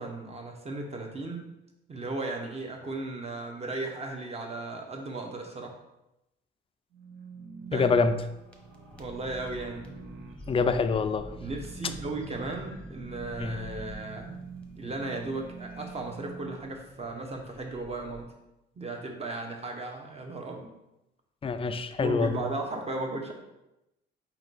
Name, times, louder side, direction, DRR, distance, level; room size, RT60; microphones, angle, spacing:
voice 1, 0.0-1.5 1.9-5.7 7.7-7.9 9.0-9.8 11.4-14.3 14.7-18.3 18.8-20.7 22.0-23.3, right 2 dB, 30° right, 2 dB, 0.9 m, -36 dB
sound 1, 6.9-16.6, right 5 dB, 75° right, 0.7 m, -46 dB
voice 2, 7.7-8.2 10.5-11.3 13.4-13.6 21.4-22.4, left 4 dB, 30° left, 9 dB, 0.4 m, -26 dB
sound 2, 8.3-18.2, equal, 5° left, 0.9 m, -47 dB
4.5 x 2.9 x 4.0 m, 0.91 s
cardioid pair, 90°, 20 cm